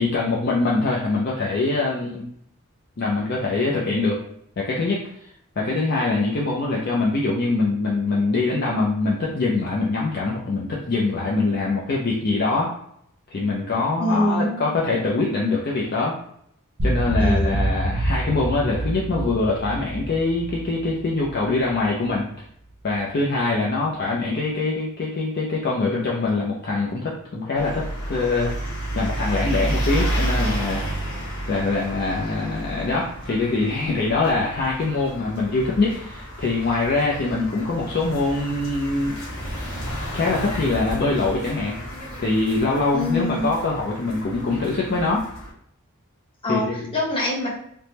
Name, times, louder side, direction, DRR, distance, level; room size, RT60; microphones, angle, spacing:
voice 1, 0.0-2.2 3.0-4.2 4.6-5.3 5.6-12.7 13.3-16.2 16.8-22.3 22.8-28.5 29.0-30.8 31.5-39.2 40.1-41.7 42.2-45.2 46.5-46.9, left 3 dB, 45° left, -3 dB, 0.4 m, -23 dB
voice 2, 14.0-14.6 17.2-17.6 42.9-43.5 46.4-47.5, left 1 dB, 25° left, -5 dB, 0.9 m, -24 dB
sound 1, 16.8-22.2, right 1 dB, 50° right, 0.6 m, -26 dB
sound 2, 27.6-45.5, right 1 dB, 70° left, 1.0 m, -31 dB
3.4 x 2.1 x 2.8 m, 0.70 s
head